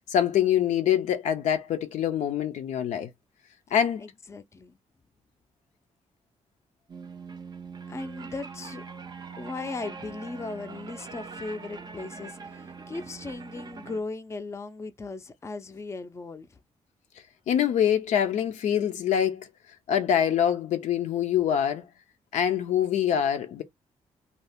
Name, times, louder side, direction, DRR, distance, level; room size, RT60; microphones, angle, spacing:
voice 1, 0.1-3.1 3.7-4.0 17.5-19.5 19.9-21.9 22.3-23.6, left 9 dB, 90° left, 0.6 m, -25 dB
voice 2, 4.0-4.8 7.9-8.8 9.4-16.5, left 3 dB, 25° left, 0.4 m, -37 dB
sound 1, 6.9-14.0, right 5 dB, 35° right, 0.5 m, -42 dB
2.7 x 2.4 x 3.4 m
cardioid pair, 95°, 12 cm